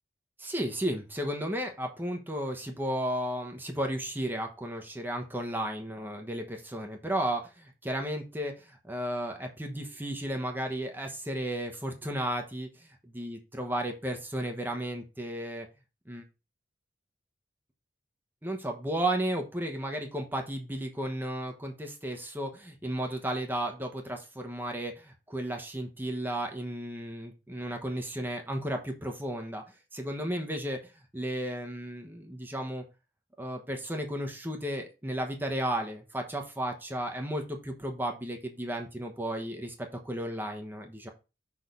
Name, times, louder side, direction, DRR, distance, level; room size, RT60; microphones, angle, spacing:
voice 1, 0.4-15.7 16.1-16.2 18.4-29.6 29.9-32.8 33.4-39.7 40.0-41.1, right 1 dB, 10° right, 3 dB, 1.0 m, -34 dB
6.2 x 3.6 x 5.4 m, 0.29 s
head